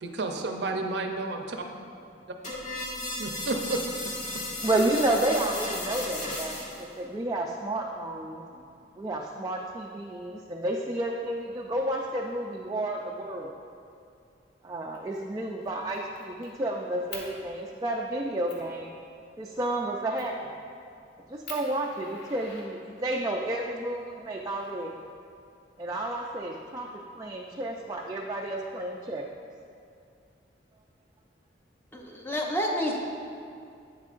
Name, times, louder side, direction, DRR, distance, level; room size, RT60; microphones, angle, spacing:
voice 1, 0.0-1.4 3.2-4.1, right 2 dB, 70° right, 4 dB, 0.6 m, -31 dB
sound 1, 2.4-6.8, left 1 dB, 45° left, 1.5 m, -35 dB
voice 2, 4.6-8.6 9.0-13.5 14.6-18.9 19.4-20.5 21.3-24.9 25.8-26.9 27.1-29.2, right 1 dB, 20° right, -1 dB, 0.3 m, -31 dB
Fire, 14.9-15.2 15.6-16.5 17.1-17.3 17.9-18.0 18.5-18.7 20.2-20.4 20.9-21.0 21.4-23.2 24.3-25.2, left 3 dB, 70° left, 1.1 m, -45 dB
voice 3, 31.9-33.0, equal, 10° left, -1 dB, 0.7 m, -29 dB
8.7 x 7.3 x 2.5 m, 2.4 s
head